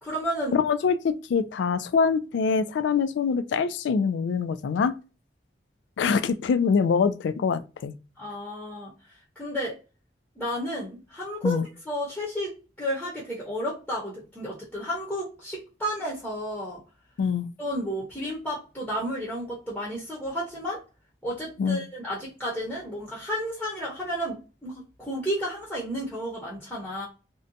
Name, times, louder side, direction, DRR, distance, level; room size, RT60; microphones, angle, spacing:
voice 1, 0.0-0.6 8.2-8.9 9.4-9.8 10.4-16.8 17.6-20.8 21.2-27.1, equal, 5° left, 0.7 m, -32 dB
voice 2, 0.5-4.9 6.0-7.9 11.4-11.7 17.2-17.4 21.6-21.8, left 5 dB, 85° left, 0.3 m, -24 dB
2.6 x 2.2 x 2.6 m
head